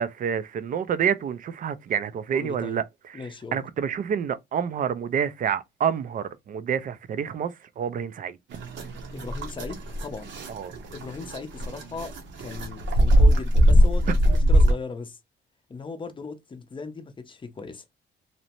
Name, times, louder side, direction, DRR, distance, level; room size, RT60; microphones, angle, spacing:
voice 1, 0.0-8.4 10.5-10.7, right 8 dB, 45° right, 0.4 m, -28 dB
voice 2, 2.3-2.8 3.1-3.6 9.1-10.3 10.9-15.2 15.7-17.8, left 4 dB, 25° left, 0.6 m, -38 dB
sound 1, 8.5-14.7, equal, 70° right, 0.8 m, -21 dB
2.6 x 2.0 x 2.9 m
cardioid pair, 90°, 20 cm